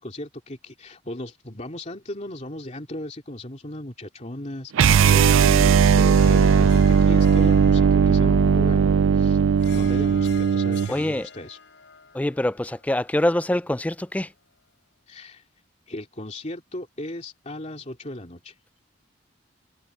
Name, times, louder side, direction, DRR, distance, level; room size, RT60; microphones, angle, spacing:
voice 1, 0.0-8.9 9.1-9.4 9.7-11.6 15.1-15.4 15.9-18.5, left 1 dB, 35° left, 3.0 m, -36 dB
sound 1, 4.7-10.9, right 6 dB, 80° right, 0.4 m, -17 dB
Harp, 6.0-14.6, left 6 dB, 65° left, 3.9 m, -47 dB
voice 2, 10.9-11.3 12.1-14.3, left 1 dB, 5° left, 0.3 m, -24 dB
head